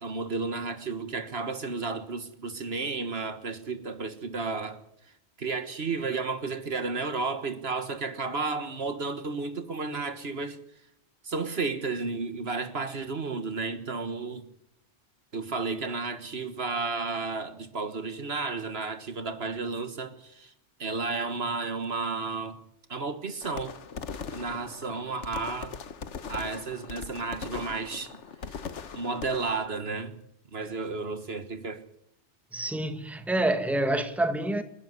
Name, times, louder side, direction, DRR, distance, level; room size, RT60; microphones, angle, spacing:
voice 1, 0.0-4.8 5.4-10.6 11.2-14.5 15.3-20.5 20.8-22.6 22.9-23.8 24.3-25.8 26.3-30.2 30.5-31.8, right 4 dB, 60° right, 1.7 m, -32 dB
sound 1, 23.4-29.7, left 6 dB, 90° left, 1.5 m, -40 dB
voice 2, 32.5-34.6, right 1 dB, ahead, 1.6 m, -27 dB
28.5 x 11.5 x 9.7 m
omnidirectional pair, 1.2 m